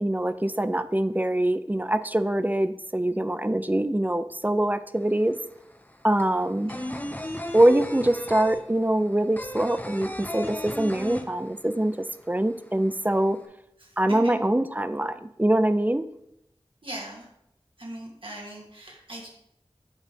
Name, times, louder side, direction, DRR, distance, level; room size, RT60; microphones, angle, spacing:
voice 1, 0.0-5.4 6.0-6.7 7.5-13.4 14.0-16.1, right 1 dB, 15° right, 12 dB, 0.3 m, -24 dB
sound 1, 5.0-5.1 5.3-11.9 12.2-12.3 12.6-13.4, left 1 dB, 15° left, 0.6 m, -35 dB
voice 2, 6.6-7.0 13.8-14.3 16.8-17.3 17.8-19.3, right 1 dB, 60° right, -3 dB, 1.8 m, -40 dB
8.1 x 3.1 x 5.3 m, 0.79 s
wide cardioid pair, 45°, 10 cm